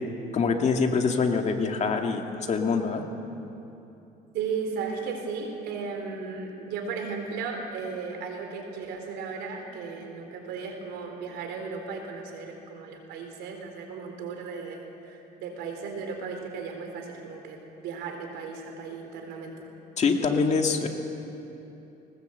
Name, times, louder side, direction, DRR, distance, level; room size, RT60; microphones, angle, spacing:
voice 1, 0.3-3.0 20.0-20.9, left 5 dB, 40° left, 3 dB, 2.2 m, -25 dB
voice 2, 4.3-19.7, right 5 dB, 90° right, 3 dB, 4.0 m, -35 dB
21.0 x 19.5 x 8.0 m, 2.9 s
cardioid pair, 110°, 17 cm